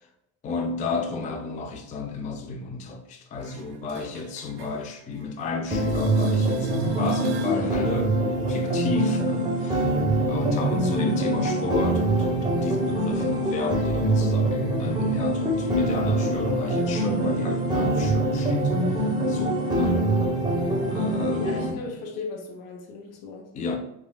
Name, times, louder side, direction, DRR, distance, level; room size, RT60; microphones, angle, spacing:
voice 1, 0.4-8.2 8.5-9.9 10.3-20.1 20.9-21.9 23.5-23.8, left 3 dB, 20° left, 0.3 m, -31 dB
sound 1, 3.4-5.5 5.7-7.7 13.4-13.5, right 7 dB, 55° right, 0.5 m, -39 dB
sound 2, 5.7-21.7, right 1 dB, 10° right, 0.9 m, -24 dB
voice 2, 21.3-23.5, left 4 dB, 70° left, 0.8 m, -37 dB
3.1 x 2.3 x 2.2 m
hypercardioid pair, 60°, 43 cm